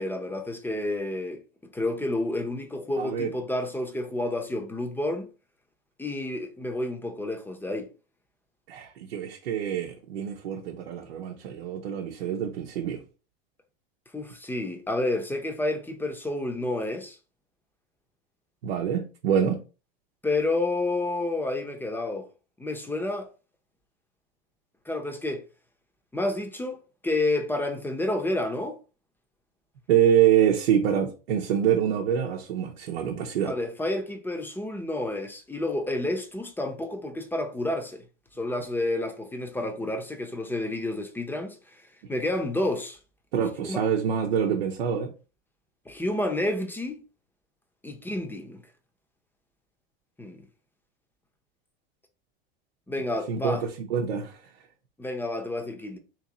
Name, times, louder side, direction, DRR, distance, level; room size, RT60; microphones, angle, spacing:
voice 1, 0.0-1.4 1.7-5.3 6.0-7.9 14.1-17.2 20.2-22.3 22.6-23.3 24.8-25.4 26.1-28.8 33.4-38.0 38.4-41.6 42.1-43.0 43.6-43.8 45.9-47.0 47.8-48.6 50.2-50.4 52.9-53.6 55.0-56.0, left 2 dB, 5° left, 0.8 m, -30 dB
voice 2, 3.0-3.3 8.7-13.0 18.6-19.6 29.9-33.6 43.3-45.1 53.3-54.4, right 9 dB, 80° right, 0.8 m, -25 dB
3.1 x 3.0 x 3.9 m
hypercardioid pair, 105°, 30 cm